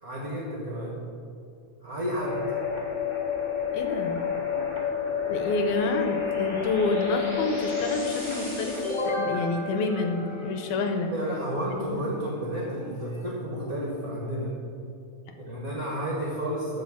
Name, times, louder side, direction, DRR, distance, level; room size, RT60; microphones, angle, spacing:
voice 1, 0.0-0.9 1.8-2.4 11.1-14.5 15.4-16.8, equal, 40° right, -4 dB, 1.3 m, -31 dB
sound 1, 2.2-10.9, left 6 dB, 15° left, 1.1 m, -30 dB
voice 2, 3.7-4.3 5.3-11.1 11.9-12.0 15.3-15.4, left 3 dB, 80° left, 6 dB, 2.0 m, -28 dB
sound 2, 4.3-13.2, equal, 35° left, 2.9 m, -48 dB
12.5 x 4.2 x 7.3 m, 2.4 s
omnidirectional pair, 3.5 m